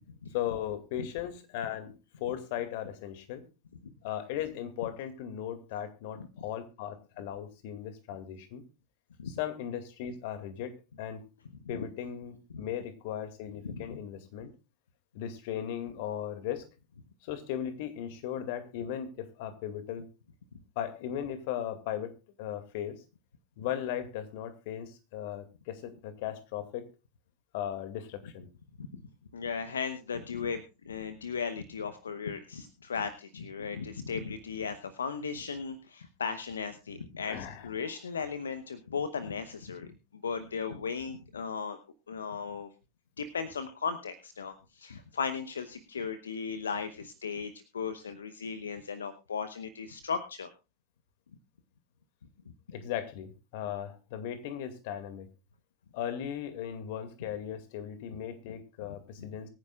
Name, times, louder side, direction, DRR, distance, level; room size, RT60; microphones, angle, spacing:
voice 1, 0.3-1.9 2.2-3.5 4.0-8.6 9.3-11.3 11.7-14.5 15.1-16.7 17.2-20.1 20.8-22.1 22.4-23.0 23.6-26.9 27.5-28.5 37.2-37.7 52.7-55.3 55.9-59.5, left 10 dB, 60° left, 9 dB, 2.2 m, -37 dB
voice 2, 13.6-14.0 28.8-28.9 29.3-39.9 40.2-41.8 42.1-42.7 43.2-50.5, left 5 dB, 80° left, 11 dB, 0.9 m, -36 dB
23.5 x 9.8 x 2.4 m, 0.29 s
figure-of-eight pair, 85°, 0 cm